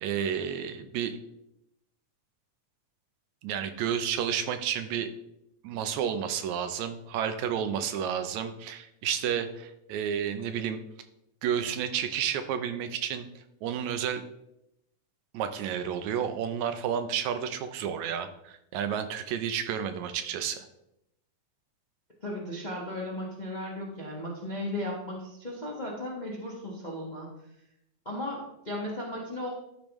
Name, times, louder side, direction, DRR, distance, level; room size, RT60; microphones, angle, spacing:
voice 1, 0.0-1.2 3.4-5.1 5.6-10.8 11.4-13.3 13.6-14.2 15.3-20.7, right 8 dB, 80° right, 9 dB, 1.9 m, -31 dB
voice 2, 22.2-27.3 28.0-29.5, left 1 dB, 35° left, -4 dB, 0.7 m, -36 dB
12.0 x 5.1 x 3.1 m, 0.83 s
omnidirectional pair, 3.4 m